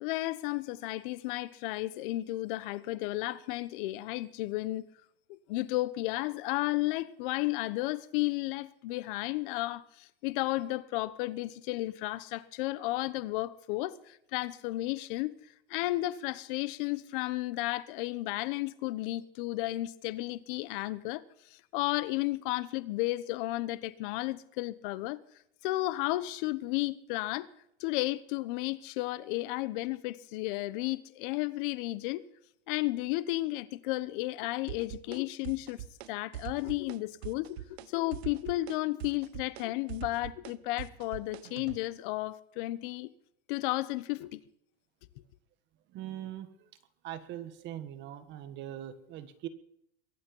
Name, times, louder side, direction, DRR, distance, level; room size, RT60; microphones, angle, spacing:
voice 1, 0.0-4.8 5.3-15.3 15.7-21.2 21.5-25.2 25.6-27.5 27.8-32.2 32.7-43.1 43.5-44.4, left 18 dB, 55° left, 1.1 m, -33 dB
sound 1, 34.7-35.2 35.4-36.1 36.3-37.0 37.2-37.9 38.1-41.8, right 14 dB, 80° right, 1.0 m, -42 dB
voice 2, 45.9-46.7 47.0-49.5, right 12 dB, 35° right, 1.7 m, -41 dB
23.0 x 8.8 x 5.5 m
supercardioid pair, 155°, 32 cm